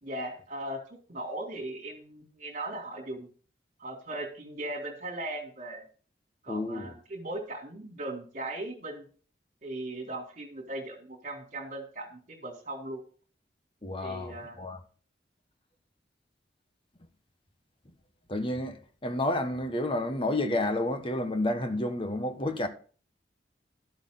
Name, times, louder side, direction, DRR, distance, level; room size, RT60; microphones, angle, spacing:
voice 1, 0.0-3.3 3.8-5.8 6.4-9.1 9.6-13.0 14.0-14.6, right 1 dB, 45° right, 3.6 m, -38 dB
voice 2, 6.5-6.9 13.8-14.8 18.3-22.7, left 1 dB, 30° left, 1.5 m, -30 dB
12.5 x 8.2 x 4.0 m
head